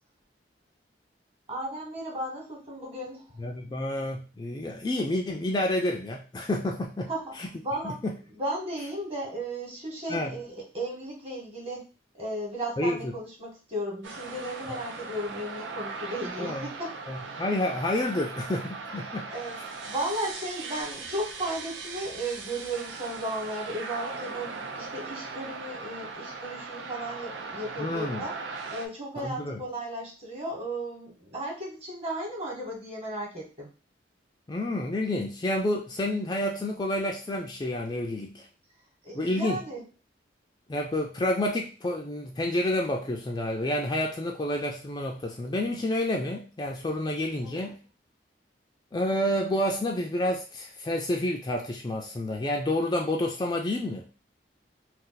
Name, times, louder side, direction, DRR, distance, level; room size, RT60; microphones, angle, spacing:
voice 1, 1.5-3.4 7.1-7.2 7.6-8.0 8.3-16.9 19.3-19.6 19.9-28.3 28.7-33.7 39.0-39.8 47.4-47.7, right 1 dB, 35° right, -1 dB, 1.2 m, -35 dB
voice 2, 3.4-7.1 7.4-7.5 7.8-8.1 10.1-10.3 12.8-13.1 16.4-16.7 17.1-19.3 27.8-28.2 29.2-29.6 34.5-38.5 39.2-39.6 40.7-47.8 48.9-54.0, left 1 dB, 20° left, 1 dB, 0.3 m, -29 dB
sound 1, 14.0-28.9, right 4 dB, 90° right, 0.5 m, -39 dB
2.5 x 2.4 x 3.9 m, 0.34 s
head